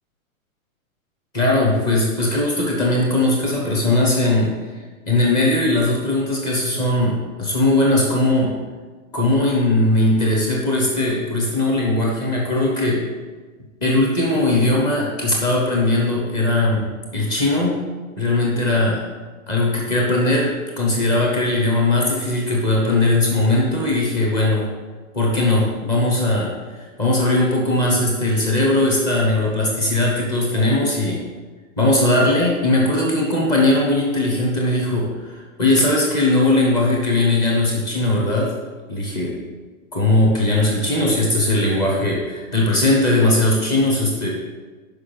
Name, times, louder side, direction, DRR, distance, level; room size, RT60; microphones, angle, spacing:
voice 1, 1.3-4.5 5.0-8.6 9.1-13.0 13.8-17.9 18.2-19.0 19.5-24.7 25.1-26.5 27.0-31.2 31.8-38.5 38.9-39.4 39.9-44.3, left 2 dB, 10° left, -3 dB, 0.7 m, -19 dB
5.9 x 5.4 x 6.7 m, 1.4 s
hypercardioid pair, 175°, 42 cm